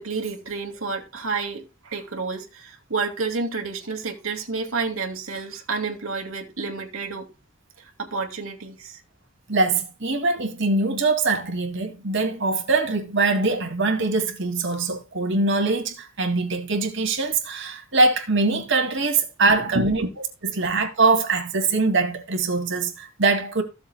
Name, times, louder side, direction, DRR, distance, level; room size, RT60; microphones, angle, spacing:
voice 1, 0.0-7.3 7.8-9.0 19.7-20.1 20.6-20.7, right 4 dB, 75° right, 2.6 m, -30 dB
voice 2, 9.5-20.0 20.6-23.6, right 3 dB, 60° right, 2.5 m, -22 dB
16.5 x 7.2 x 2.3 m
head